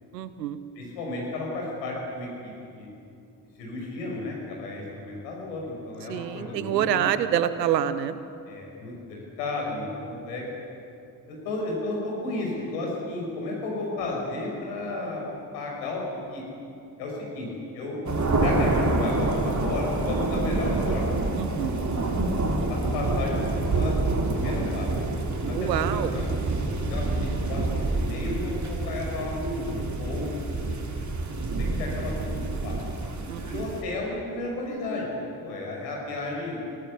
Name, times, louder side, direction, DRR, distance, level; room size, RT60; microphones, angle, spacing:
voice 1, 0.1-0.6 6.1-8.2 21.3-22.0 25.5-26.1 33.3-33.7, right 10 dB, 85° right, 13 dB, 1.0 m, -27 dB
voice 2, 0.8-2.9 3.6-6.9 8.5-10.4 11.3-15.2 15.5-16.0 16.3-16.4 17.0-17.5 17.7-18.0 18.4-21.1 22.7-24.9 25.5-26.2 26.9-30.8 31.6-32.8 33.4-36.6, left 2 dB, 80° left, -2 dB, 6.1 m, -33 dB
sound 1, 18.1-33.8, right 2 dB, 35° right, 3.7 m, -27 dB
25.0 x 18.5 x 8.6 m, 2.6 s
figure-of-eight pair, 45°, 48 cm